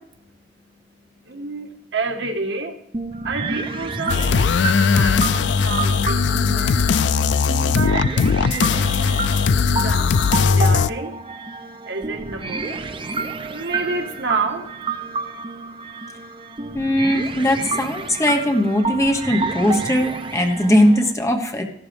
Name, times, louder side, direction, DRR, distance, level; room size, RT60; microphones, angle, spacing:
voice 1, 0.2-15.0, right 3 dB, 70° right, 4 dB, 1.5 m, -31 dB
sound 1, 2.9-21.1, right 4 dB, 25° right, 0.6 m, -30 dB
sound 2, 4.1-10.9, left 5 dB, 70° left, 0.4 m, -18 dB
voice 2, 16.7-21.6, left 1 dB, 15° left, 3 dB, 1.1 m, -19 dB
15.0 x 12.0 x 3.4 m, 0.75 s
head